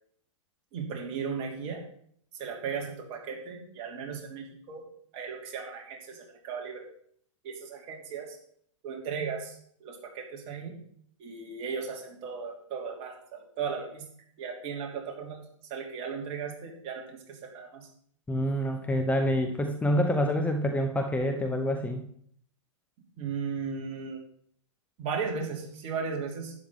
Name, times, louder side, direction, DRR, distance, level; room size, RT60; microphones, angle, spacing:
voice 1, 0.7-1.8 2.3-4.8 5.1-6.9 7.4-8.4 8.8-10.8 11.2-14.0 14.4-15.4 15.7-17.9 23.2-24.2 25.0-26.5, right 5 dB, 35° right, 0 dB, 3.0 m, -36 dB
voice 2, 18.3-22.0, equal, 10° left, 5 dB, 0.8 m, -27 dB
11.5 x 9.1 x 3.8 m, 0.63 s
hypercardioid pair, 115°, 17 cm